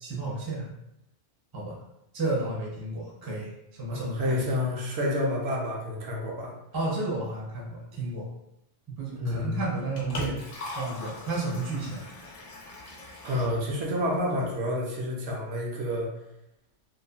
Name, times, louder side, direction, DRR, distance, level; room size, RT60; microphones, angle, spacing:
voice 1, 0.0-0.7 1.5-1.8 2.1-4.5 6.7-8.3 9.0-12.1, right 2 dB, 25° right, -4 dB, 0.5 m, -32 dB
voice 2, 3.9-6.5 9.2-9.6 13.2-16.1, left 1 dB, 70° right, -2 dB, 0.8 m, -29 dB
Liquid, 9.6-14.6, left 2 dB, 60° left, 0.7 m, -41 dB
2.7 x 2.4 x 2.2 m, 0.84 s
omnidirectional pair, 1.2 m